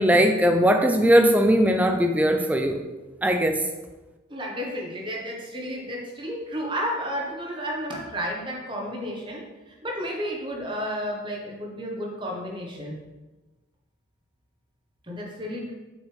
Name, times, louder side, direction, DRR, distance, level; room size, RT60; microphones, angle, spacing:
voice 1, 0.0-2.8 3.2-3.6, equal, 5° right, 5 dB, 0.4 m, -19 dB
voice 2, 4.3-9.4 9.7-13.0 15.0-15.7, equal, 25° right, -1 dB, 1.1 m, -32 dB
6.2 x 5.2 x 3.4 m, 1.1 s
head